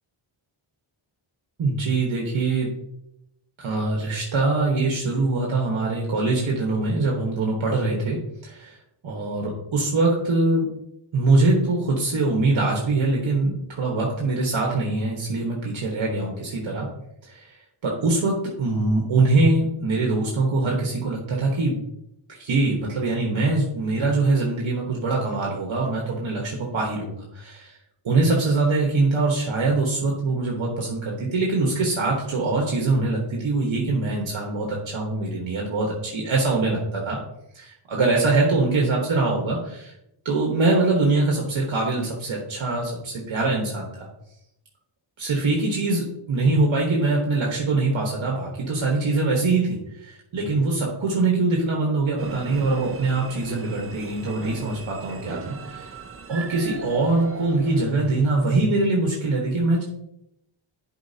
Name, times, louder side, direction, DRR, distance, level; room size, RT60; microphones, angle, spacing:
voice 1, 1.6-2.7 3.6-8.8 9.0-10.7 11.1-16.9 17.3-17.6 17.8-21.8 22.3-27.8 28.0-37.2 37.5-39.9 40.2-44.1 45.2-55.9 56.3-59.8, right 3 dB, 70° right, -1 dB, 1.4 m, -23 dB
sound 1, 52.2-58.5, right 5 dB, 30° right, 0.5 m, -39 dB
11.5 x 4.7 x 2.8 m, 0.81 s
wide cardioid pair, 170°, 49 cm